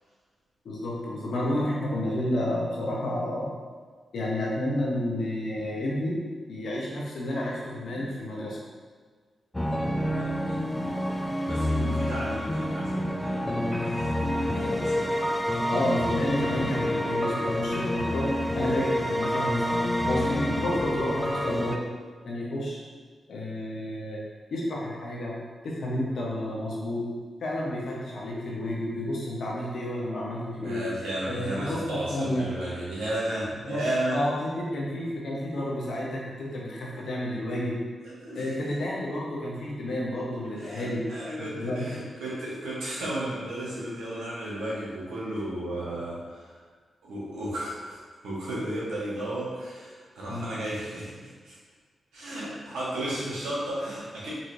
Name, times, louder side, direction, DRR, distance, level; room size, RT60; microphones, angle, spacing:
voice 1, 0.6-3.6 4.1-6.2 6.5-8.6 15.7-18.3 18.5-21.8 22.2-22.8 23.3-24.2 24.5-25.4 25.6-27.1 27.4-30.8 31.3-32.5 33.7-33.8 34.1-37.8 38.3-41.0 41.5-41.9 50.3-50.5, left 1 dB, 70° left, -4 dB, 0.8 m, -30 dB
sound 1, 9.5-21.8, left 1 dB, 15° left, 0.4 m, -28 dB
voice 2, 10.0-10.6 11.4-15.2 30.6-34.2 37.5-37.6 38.0-38.7 40.6-46.5 47.0-51.5 52.1-54.3, right 1 dB, 85° right, -7 dB, 1.1 m, -34 dB
4.0 x 2.9 x 2.6 m, 1.5 s
supercardioid pair, 45°, 0 cm